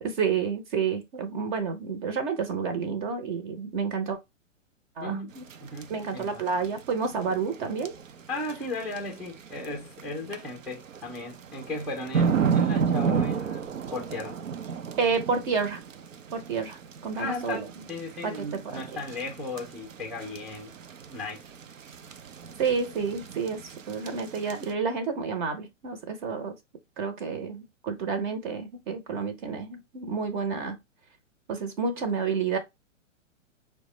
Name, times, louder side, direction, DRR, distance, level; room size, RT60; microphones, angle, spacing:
voice 1, 0.0-4.2 5.0-5.4 5.9-7.9 15.0-15.8 16.3-17.7 18.2-18.8 22.6-23.6 23.9-26.5 27.0-30.8 31.5-32.6, right 5 dB, 40° right, 0.7 m, -30 dB
voice 2, 5.0-5.3 5.6-6.4 8.3-14.4 17.2-20.7 21.1-21.4, left 2 dB, ahead, 0.4 m, -36 dB
sound 1, 5.4-24.7, right 6 dB, 80° right, 0.6 m, -33 dB
4.7 x 2.2 x 3.1 m
figure-of-eight pair, 115°, 39 cm